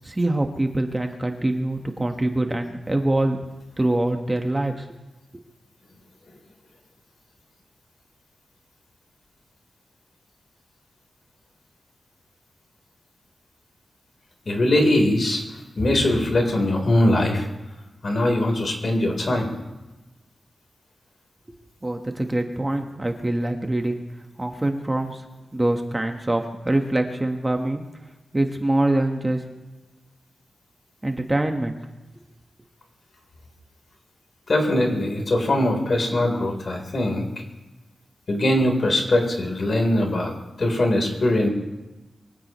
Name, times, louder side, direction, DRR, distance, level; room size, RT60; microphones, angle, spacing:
voice 1, 0.0-3.4 3.8-4.9 21.8-24.0 24.4-25.2 25.5-27.8 28.3-29.4 31.0-31.8, right 1 dB, 20° right, 4 dB, 1.3 m, -24 dB
voice 2, 14.5-15.4 15.8-17.5 18.0-19.5 34.5-37.3 38.3-40.3 40.6-41.5, left 1 dB, 50° left, 2 dB, 3.8 m, -21 dB
23.5 x 16.5 x 3.1 m, 1.1 s
wide cardioid pair, 120°, 0 cm